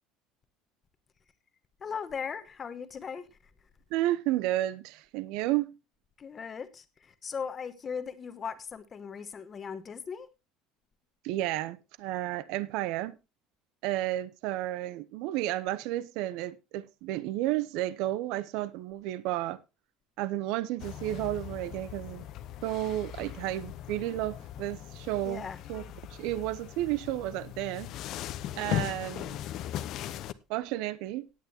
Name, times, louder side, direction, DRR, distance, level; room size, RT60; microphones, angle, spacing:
voice 1, 1.8-3.3 6.2-10.3 25.2-25.6, left 6 dB, 25° left, 1.1 m, -38 dB
voice 2, 3.9-5.7 11.2-13.2 13.8-19.6 20.2-22.2 22.6-25.8 26.1-27.9 28.5-29.4 30.5-31.3, right 15 dB, 65° right, 0.7 m, -32 dB
sound 1, 20.8-30.3, left 12 dB, 50° left, 0.7 m, -39 dB
17.5 x 9.2 x 2.8 m
cardioid pair, 155°, 0 cm